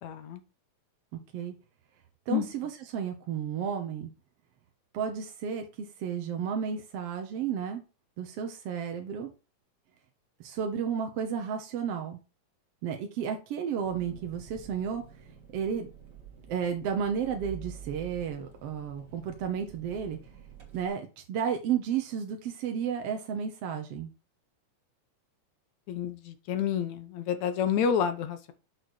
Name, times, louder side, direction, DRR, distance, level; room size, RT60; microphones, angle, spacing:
voice 1, 0.0-0.4 2.3-2.5 25.9-28.5, left 8 dB, 70° left, 10 dB, 2.1 m, -29 dB
voice 2, 1.1-1.5 2.3-4.1 4.9-7.8 8.2-9.3 10.4-12.2 12.8-15.0 15.5-15.9 16.5-20.2 20.7-24.1, right 7 dB, 65° right, 4 dB, 1.6 m, -32 dB
Engine, 13.8-20.9, right 6 dB, 40° right, 1.9 m, -48 dB
6.4 x 6.3 x 4.3 m, 0.32 s
omnidirectional pair, 3.7 m